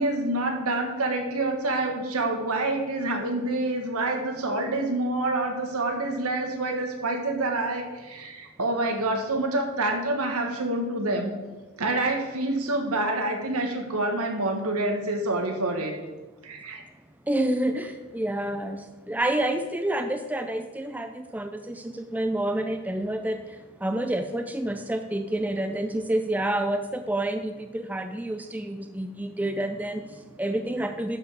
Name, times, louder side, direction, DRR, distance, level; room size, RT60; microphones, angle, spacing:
voice 1, 0.0-11.4 11.8-16.0 16.4-16.8, right 2 dB, 85° right, 4 dB, 1.5 m, -27 dB
voice 2, 17.3-31.2, right 1 dB, 5° right, 7 dB, 0.4 m, -29 dB
12.0 x 5.2 x 4.8 m, 1.2 s
head